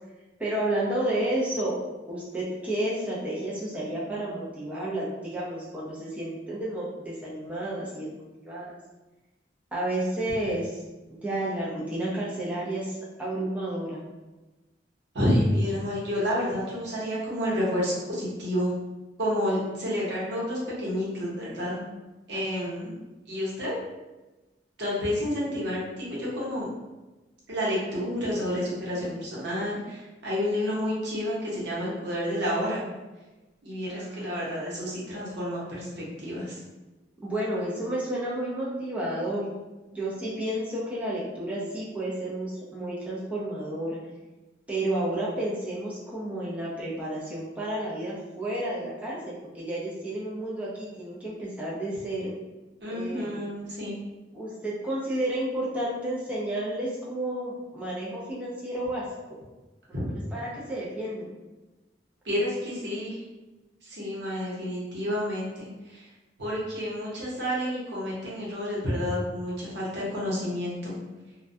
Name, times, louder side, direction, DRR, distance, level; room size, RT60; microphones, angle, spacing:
voice 1, 0.4-1.7 2.1-8.1 8.4-8.7 9.7-10.8 11.1-14.0 22.3-22.7 33.9-34.6 37.2-39.5 39.9-44.0 44.7-52.3 52.9-53.4 54.3-59.0 59.9-61.3, right 1 dB, 10° right, -7 dB, 0.4 m, -31 dB
voice 2, 15.1-18.7 19.2-21.8 22.3-23.0 23.3-23.8 24.8-26.7 27.5-32.8 33.6-36.6 52.8-54.0 59.9-60.1 62.2-63.2 63.8-66.1 66.4-70.9, equal, 75° right, -6 dB, 0.8 m, -29 dB
2.2 x 2.2 x 2.6 m, 1.1 s
head